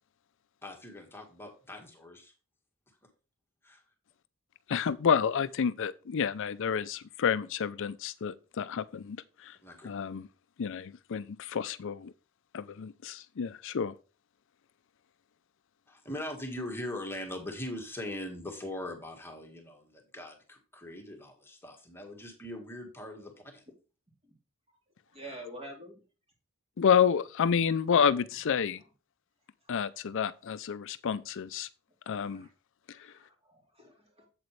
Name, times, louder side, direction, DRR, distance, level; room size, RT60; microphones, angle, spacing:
voice 1, 0.6-2.3 3.6-3.8 9.6-9.9 15.9-23.6, left 1 dB, 10° left, 1.7 m, -41 dB
voice 2, 4.7-9.6 9.8-10.3 10.6-12.1 12.5-13.9 26.8-28.8 29.7-31.7 32.1-32.5 32.9-33.1, left 7 dB, 60° left, 0.5 m, -29 dB
voice 3, 25.1-26.0 32.2-32.5 32.9-34.3, right 1 dB, 30° right, 3.2 m, -47 dB
8.2 x 7.9 x 3.2 m
head